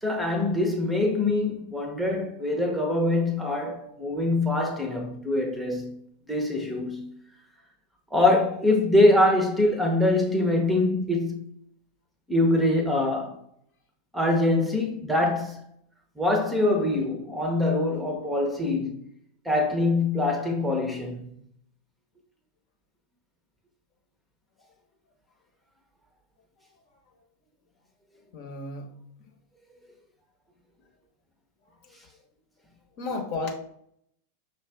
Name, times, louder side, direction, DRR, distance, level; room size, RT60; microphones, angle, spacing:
voice 1, 0.0-6.0 6.3-7.1 8.1-11.4 12.3-13.4 14.1-15.6 16.2-19.0 19.4-21.3, left 2 dB, 5° right, 0.9 m, -24 dB
voice 2, 26.6-27.2 28.3-28.9 31.6-32.0 32.9-33.5, left 3 dB, 45° left, 1.1 m, -35 dB
5.7 x 2.4 x 3.5 m
figure-of-eight pair, 90°, 0 cm